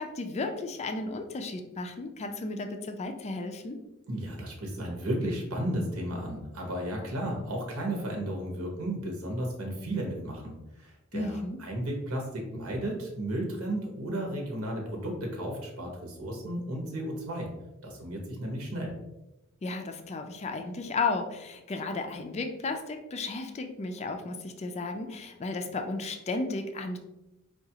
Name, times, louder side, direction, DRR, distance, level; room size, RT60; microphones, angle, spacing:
voice 1, 0.0-3.8 11.1-11.6 19.6-27.0, left 3 dB, 30° left, 5 dB, 0.3 m, -34 dB
voice 2, 4.1-17.5 17.8-18.9, right 1 dB, 85° right, 1 dB, 0.9 m, -34 dB
4.7 x 2.3 x 2.8 m, 0.97 s
head